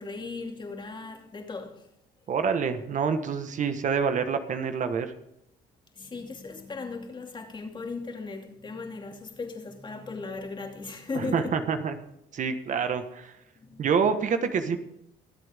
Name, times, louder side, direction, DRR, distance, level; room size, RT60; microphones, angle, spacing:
voice 1, 0.0-1.9 5.9-11.6 13.6-13.9, left 4 dB, 25° left, 2.7 m, -37 dB
voice 2, 2.3-5.1 11.1-11.9 12.3-13.3 13.8-14.8, right 6 dB, 50° right, 1.4 m, -27 dB
23.5 x 7.9 x 3.6 m
cardioid pair, 110°, 17 cm